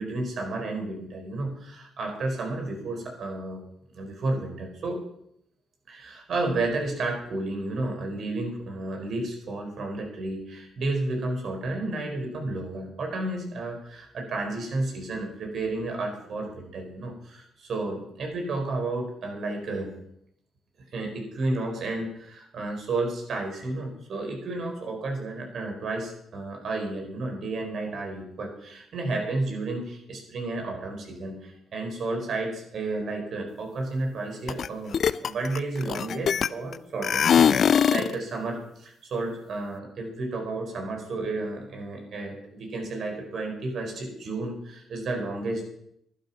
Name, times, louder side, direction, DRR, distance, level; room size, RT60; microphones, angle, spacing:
voice 1, 0.0-3.6 3.9-5.0 5.9-19.9 20.9-45.7, right 2 dB, 60° right, 3 dB, 4.7 m, -32 dB
sound 1, 34.5-34.7 34.9-36.7 37.0-38.1, left 8 dB, 60° left, 0.5 m, -21 dB
11.5 x 11.5 x 5.9 m, 0.73 s
supercardioid pair, 60°, 0 cm